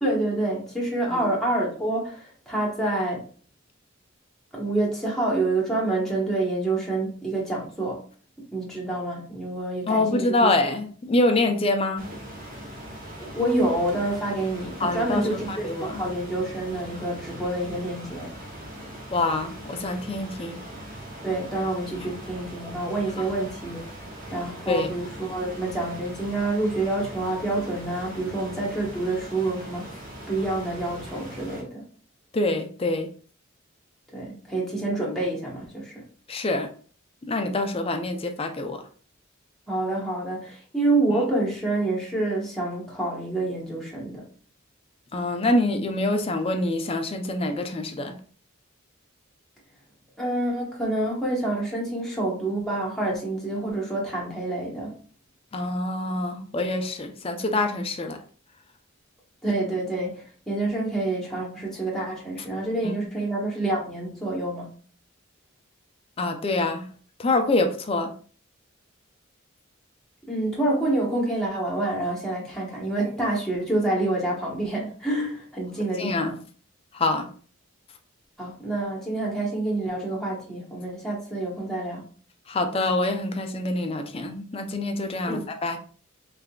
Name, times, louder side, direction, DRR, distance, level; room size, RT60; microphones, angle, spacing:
voice 1, 0.0-3.2 4.5-8.0 8.5-10.5 13.2-18.3 21.2-23.8 24.3-29.9 30.3-31.8 34.1-36.0 39.7-44.3 50.2-54.9 59.4-64.7 70.3-76.4 78.4-82.0 85.3-85.4, right 2 dB, ahead, 1.0 m, -27 dB
voice 2, 9.9-12.1 14.8-16.0 19.1-20.6 24.7-24.9 32.3-33.1 36.3-36.7 37.2-38.8 45.1-48.2 55.5-58.2 62.8-63.0 66.2-66.9 67.2-68.1 76.0-76.4 76.9-77.3 82.5-85.8, left 2 dB, 25° left, 0.4 m, -25 dB
sound 1, 12.0-31.6, equal, 40° right, 0.9 m, -40 dB
3.6 x 3.3 x 2.3 m
head